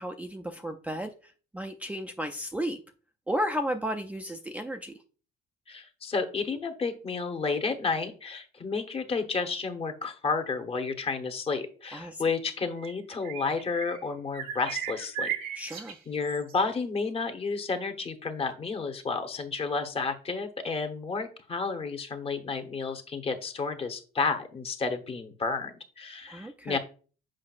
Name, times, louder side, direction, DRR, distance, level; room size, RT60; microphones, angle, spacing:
voice 1, 0.0-2.8 3.3-4.9 11.9-12.2 15.6-16.0 26.3-26.8, equal, 10° right, 5 dB, 0.4 m, -33 dB
voice 2, 5.7-15.3 16.1-26.8, left 4 dB, 35° left, 7 dB, 1.0 m, -31 dB
sound 1, 12.8-14.1 14.3-16.6, right 9 dB, 65° right, 1.1 m, -36 dB
7.5 x 5.1 x 2.4 m, 0.39 s
cardioid pair, 110°, 17 cm